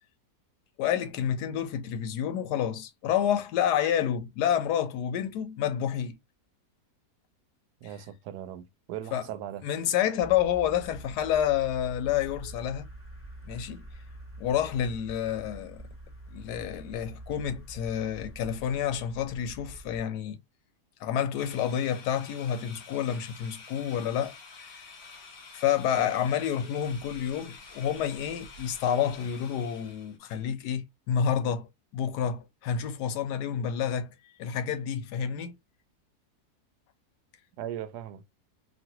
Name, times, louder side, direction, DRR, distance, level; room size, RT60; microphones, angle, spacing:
voice 1, 0.8-6.2 9.1-9.2 9.6-12.8 13.5-13.8 14.4-15.8 16.3-20.4 21.0-24.3 24.6-24.7 25.5-31.7 31.9-35.5, left 9 dB, 90° left, 1.2 m, -29 dB
voice 2, 7.8-9.6 37.6-38.2, right 11 dB, 85° right, 1.1 m, -38 dB
sound 1, 10.2-20.0, right 1 dB, 10° left, 0.8 m, -46 dB
sound 2, 21.4-30.2, left 4 dB, 70° left, 1.5 m, -48 dB
3.1 x 2.6 x 2.7 m
omnidirectional pair, 1.7 m